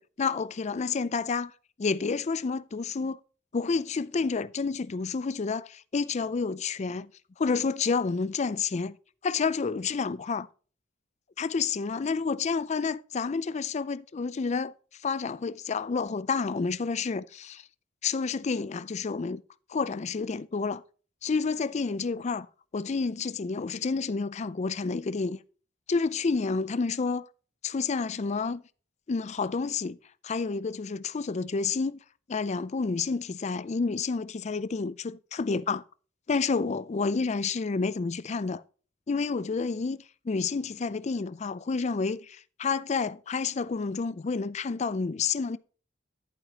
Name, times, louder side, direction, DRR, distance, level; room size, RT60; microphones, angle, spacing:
voice 1, 0.0-1.5 1.8-3.2 3.5-7.1 7.4-9.0 9.2-10.5 11.4-14.7 15.0-17.6 18.0-19.4 19.7-20.8 21.2-22.5 22.7-25.4 25.9-27.3 27.6-28.6 29.1-30.0 30.2-32.0 32.3-35.8 36.3-38.6 39.1-45.6, left 4 dB, 35° left, 0.4 m, -29 dB
11.0 x 9.1 x 2.9 m
head